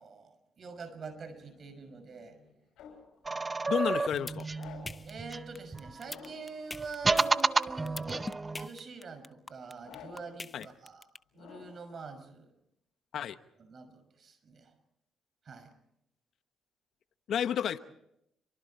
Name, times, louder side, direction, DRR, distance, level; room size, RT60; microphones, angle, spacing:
voice 1, 0.0-2.4 5.0-8.2 8.6-11.1 11.3-12.5 13.6-14.7 15.4-15.7, right 4 dB, 50° right, 9 dB, 5.9 m, -45 dB
sound 1, 1.1-3.1 4.5-5.1 6.0-6.6 7.1-7.6 8.0-8.5 9.8-10.4 11.3-11.9, left 6 dB, 85° left, 7.1 m, -52 dB
sound 2, 3.2-6.0 6.7-8.7, right 3 dB, 25° right, 0.8 m, -31 dB
voice 2, 3.7-4.5 10.5-10.6 13.1-13.4 17.3-17.8, left 9 dB, 70° left, 11 dB, 1.1 m, -31 dB
sound 3, 3.9-11.2, left 3 dB, 25° left, 0.9 m, -42 dB
28.5 x 24.5 x 4.3 m, 0.78 s
cardioid pair, 80°, 0 cm